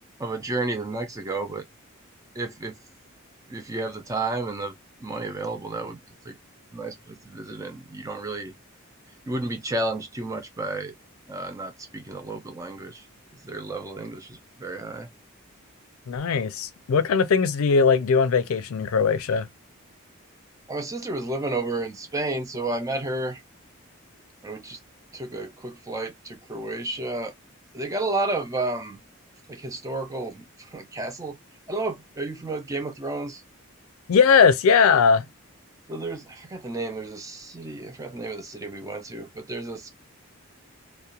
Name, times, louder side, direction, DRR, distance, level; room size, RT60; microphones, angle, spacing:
voice 1, 0.2-1.6 2.4-2.8 3.5-4.7 5.0-6.4 6.7-8.5 9.3-10.9 11.3-13.1 13.4-15.1 20.7-23.4 24.4-24.8 25.1-27.3 27.7-29.0 29.5-31.4 31.7-33.4 35.9-39.9, right 2 dB, 15° right, 0.3 m, -31 dB
voice 2, 16.1-19.5 34.1-35.2, left 5 dB, 80° left, 0.4 m, -19 dB
2.3 x 2.1 x 2.7 m
head